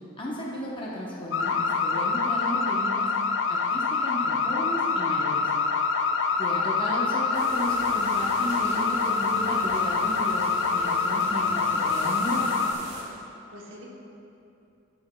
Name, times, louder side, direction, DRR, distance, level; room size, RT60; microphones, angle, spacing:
voice 1, 0.2-3.1 3.5-5.8 6.4-12.6, equal, 25° left, -4 dB, 0.8 m, -34 dB
sound 1, 1.3-12.7, left 4 dB, 65° left, 0.4 m, -25 dB
voice 2, 6.2-6.7 13.2-13.9, equal, 85° right, -2 dB, 1.0 m, -49 dB
sound 2, 7.3-13.0, right 2 dB, 40° right, 1.4 m, -40 dB
9.9 x 7.7 x 2.2 m, 2.8 s
head